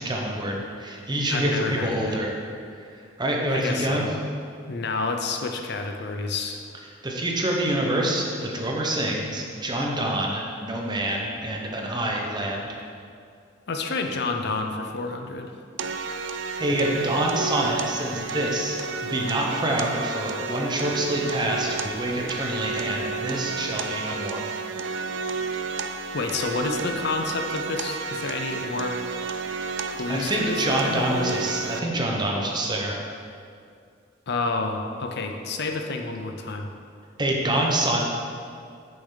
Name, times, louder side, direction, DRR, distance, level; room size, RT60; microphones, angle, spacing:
voice 1, 0.0-2.3 3.2-4.1 7.0-12.7 16.4-24.4 30.1-32.9 37.2-38.0, right 1 dB, 25° right, -1 dB, 1.0 m, -26 dB
voice 2, 1.3-2.2 3.5-4.1 4.7-6.7 13.7-15.6 26.1-29.0 29.9-31.4 34.3-36.7, left 3 dB, 60° left, 4 dB, 0.7 m, -29 dB
sound 1, 15.8-31.8, right 4 dB, 70° right, 0.5 m, -32 dB
8.5 x 7.0 x 4.0 m, 2.3 s
head